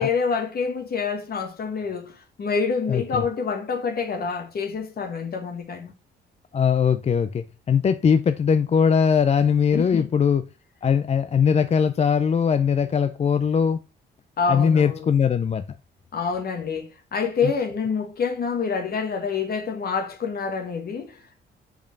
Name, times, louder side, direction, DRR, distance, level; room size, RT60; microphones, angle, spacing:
voice 1, 0.0-5.9 9.7-10.1 14.4-15.1 16.1-21.4, left 5 dB, 50° left, 1.4 m, -27 dB
voice 2, 2.9-3.2 6.5-10.4 10.8-13.8 14.5-15.6 17.4-17.5, left 7 dB, 35° left, 0.4 m, -20 dB
5.3 x 5.0 x 4.5 m
cardioid pair, 90°, 20 cm